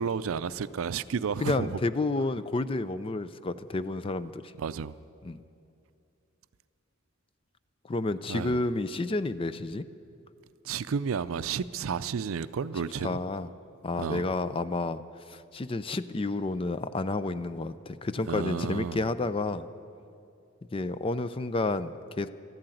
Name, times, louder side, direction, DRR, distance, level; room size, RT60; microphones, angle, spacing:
voice 1, 0.0-1.8 4.6-4.9 8.3-8.6 10.6-13.2 14.0-14.3 18.3-19.0, right 6 dB, 80° right, 0.4 m, -32 dB
voice 2, 1.4-4.5 5.2-5.4 7.9-9.8 13.0-13.5 13.8-15.0 15.3-19.7 20.7-22.3, left 2 dB, 25° left, 0.4 m, -30 dB
13.0 x 11.5 x 9.1 m
head